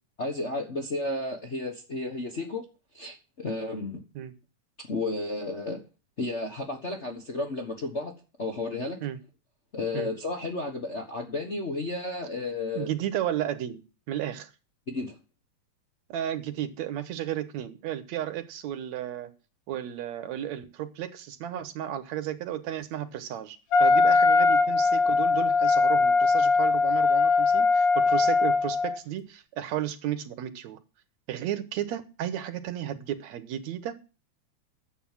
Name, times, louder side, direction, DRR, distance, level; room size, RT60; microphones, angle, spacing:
voice 1, 0.2-2.6 2.9-4.0 4.9-5.8 6.2-8.1 8.4-9.0 9.7-12.9 14.9-15.1, left 2 dB, 40° left, 0.9 m, -32 dB
voice 2, 12.8-14.5 16.1-19.3 19.7-30.8 31.3-33.9, right 11 dB, 75° right, 2.3 m, -33 dB
Wind instrument woodwind instrument, 23.7-29.0, left 4 dB, 55° left, 2.2 m, -21 dB
10.5 x 7.9 x 7.3 m
omnidirectional pair, 3.3 m